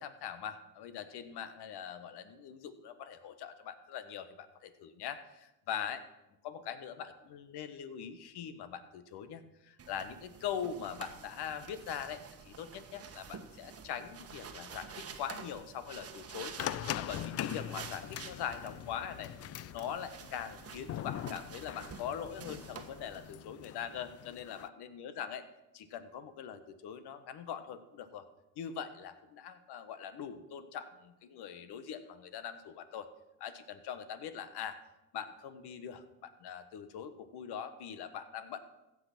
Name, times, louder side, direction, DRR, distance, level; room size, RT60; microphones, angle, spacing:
voice 1, 0.0-6.0 6.4-16.6 16.9-19.3 19.7-25.5 25.7-28.2 28.6-33.1 33.4-34.8 35.1-38.6, left 8 dB, 60° left, 11 dB, 1.3 m, -42 dB
sound 1, 9.8-23.3, right 6 dB, 30° right, 1.3 m, -49 dB
sound 2, 16.6-24.7, left 12 dB, 35° left, 0.4 m, -42 dB
15.5 x 6.0 x 5.9 m, 0.92 s
hypercardioid pair, 75°, 45 cm